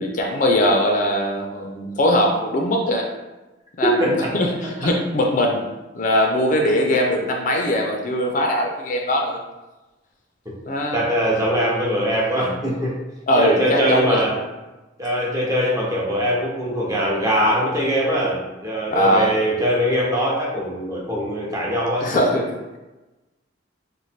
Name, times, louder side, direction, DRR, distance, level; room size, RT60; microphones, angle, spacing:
voice 1, 0.0-3.1 3.8-5.7 5.9-9.4 10.7-11.0 13.3-14.2 18.9-19.3 22.0-22.4, left 1 dB, 45° left, 1 dB, 0.4 m, -20 dB
voice 2, 4.0-4.3 4.8-4.9 10.9-13.0 13.3-14.4 15.0-22.3, equal, 20° right, -4 dB, 0.7 m, -22 dB
3.1 x 2.1 x 4.2 m, 1.1 s
head